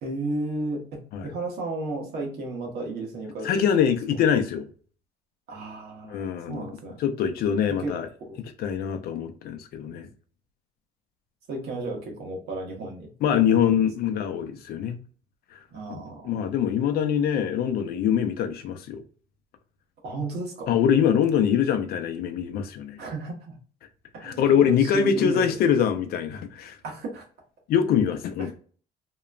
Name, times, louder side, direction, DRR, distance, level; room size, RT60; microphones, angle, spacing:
voice 1, 0.0-3.5 5.5-7.0 7.7-7.9 8.2-8.4 11.5-13.6 15.7-16.3 20.0-20.7 23.0-23.5 24.1-24.5 24.8-25.5 26.8-27.2 28.4-28.5, right 2 dB, 70° right, 1.1 m, -33 dB
voice 2, 3.4-4.7 6.0-6.7 7.0-8.1 8.6-10.1 13.2-15.0 15.5-15.6 15.9-19.0 20.7-23.0 24.2-26.8 27.7-28.5, left 8 dB, 65° left, 0.5 m, -24 dB
2.9 x 2.1 x 2.3 m
cardioid pair, 110°, 17 cm